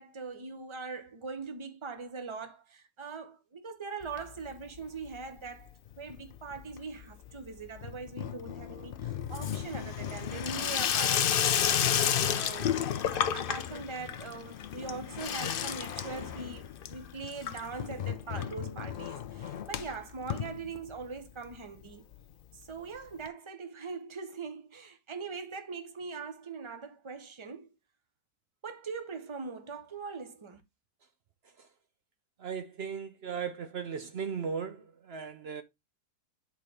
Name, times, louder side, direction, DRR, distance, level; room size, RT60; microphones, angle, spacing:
voice 1, 0.0-12.8 13.1-22.0 22.5-27.7 28.6-30.6, right 4 dB, 25° right, 0.7 m, -42 dB
Water tap faucet / Sink (filling or washing), 4.0-4.8 5.1-5.6 5.9-21.2 21.5-21.6 21.8-21.9 22.1-22.2 23.3-23.4, left 9 dB, 75° left, 0.5 m, -32 dB
voice 2, 32.4-35.6, right 6 dB, 60° right, 0.6 m, -37 dB
10.5 x 4.1 x 3.3 m
omnidirectional pair, 1.7 m